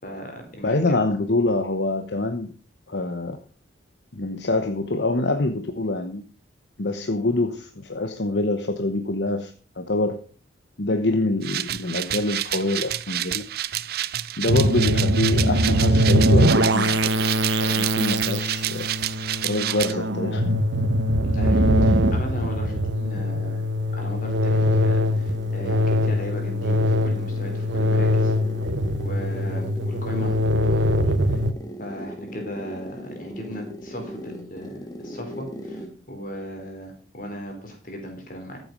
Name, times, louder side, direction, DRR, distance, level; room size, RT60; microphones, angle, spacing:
voice 1, 0.0-1.0 21.2-23.6 23.9-28.3 29.0-31.4 31.8-38.6, equal, 45° left, 3 dB, 3.9 m, -37 dB
voice 2, 0.6-2.5 2.9-3.4 4.1-6.2 6.8-10.2 10.8-13.4 14.4-17.0 17.6-18.9 19.4-20.6, left 2 dB, 65° left, 7 dB, 1.0 m, -25 dB
sound 1, 11.4-19.9, right 12 dB, 55° right, 0.5 m, -29 dB
sound 2, 14.5-31.5, equal, 75° right, 1.1 m, -22 dB
sound 3, 24.3-36.0, equal, 20° left, 1.5 m, -39 dB
14.0 x 7.8 x 5.3 m, 0.41 s
head